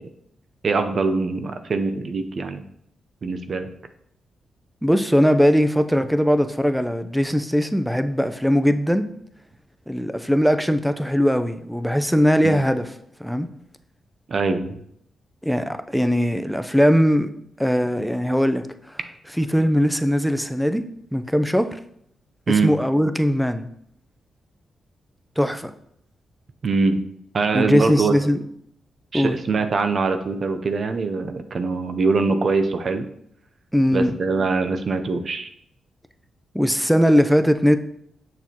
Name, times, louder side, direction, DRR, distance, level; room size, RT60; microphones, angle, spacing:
voice 1, 0.6-2.6 3.2-3.7 12.4-12.5 14.3-14.8 22.5-22.8 26.6-27.0 27.3-28.1 29.1-33.1 33.9-35.5, right 4 dB, 55° right, 0.6 m, -23 dB
voice 2, 4.8-9.1 9.9-12.9 13.2-13.5 15.4-17.3 17.6-18.6 19.4-20.9 21.1-21.8 22.5-23.7 25.4-25.7 27.5-28.4 29.1-29.4 33.7-34.1 36.5-37.8, equal, ahead, 0.6 m, -20 dB
6.8 x 6.2 x 2.9 m
supercardioid pair, 50°, 0 cm